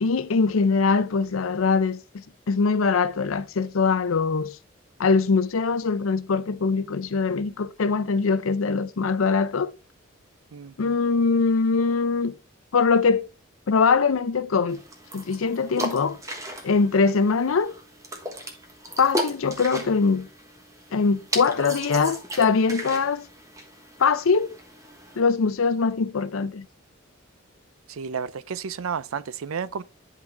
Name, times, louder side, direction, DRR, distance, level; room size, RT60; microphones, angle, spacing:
voice 1, 0.0-4.6 5.0-9.7 10.8-12.3 12.7-13.3 13.7-14.8 15.1-16.2 16.6-17.7 19.0-20.3 20.9-23.3 24.0-24.6 25.2-26.7, left 4 dB, 80° left, 0.6 m, -22 dB
voice 2, 10.5-11.0 27.9-29.8, right 6 dB, 85° right, 0.5 m, -32 dB
sound 1, 14.7-25.2, equal, 15° right, 1.2 m, -36 dB
11.0 x 4.0 x 3.4 m
head